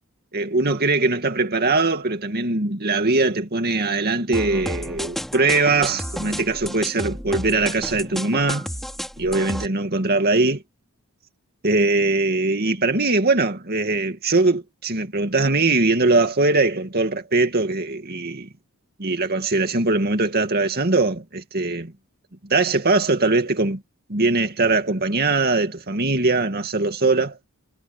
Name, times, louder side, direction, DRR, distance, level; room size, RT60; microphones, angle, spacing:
voice 1, 0.3-8.7 9.2-10.6 11.6-18.5 19.0-21.9 22.5-23.8 24.1-27.4, right 3 dB, 45° right, 2.4 m, -21 dB
sound 1, 4.3-9.7, equal, ahead, 5.6 m, -31 dB
head